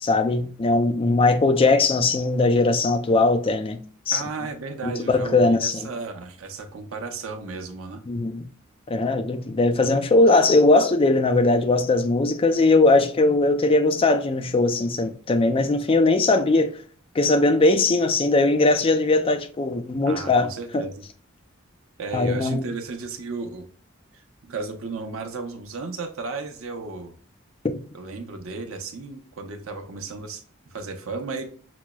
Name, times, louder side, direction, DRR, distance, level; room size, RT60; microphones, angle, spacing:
voice 1, 0.0-3.8 4.1-4.2 4.8-5.9 8.1-8.5 8.9-16.7 17.2-20.8 22.1-22.7, left 2 dB, 25° left, 0.4 m, -20 dB
voice 2, 4.1-8.0 20.0-21.0 22.0-23.6 24.1-27.1 27.9-30.4 30.7-31.4, right 4 dB, 85° right, 0.7 m, -34 dB
6.0 x 2.0 x 2.2 m
head